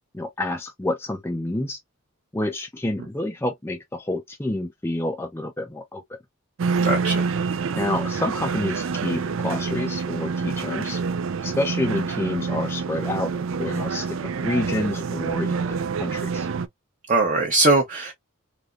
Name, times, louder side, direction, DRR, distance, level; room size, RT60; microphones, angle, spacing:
voice 1, 0.1-1.8 2.3-6.0 7.7-11.0 11.4-16.5, left 1 dB, 10° left, 0.4 m, -28 dB
sound 1, 6.6-16.7, right 5 dB, 60° right, 0.4 m, -27 dB
voice 2, 6.8-7.3 17.1-18.1, right 2 dB, 35° right, 0.8 m, -20 dB
3.4 x 2.9 x 2.4 m
head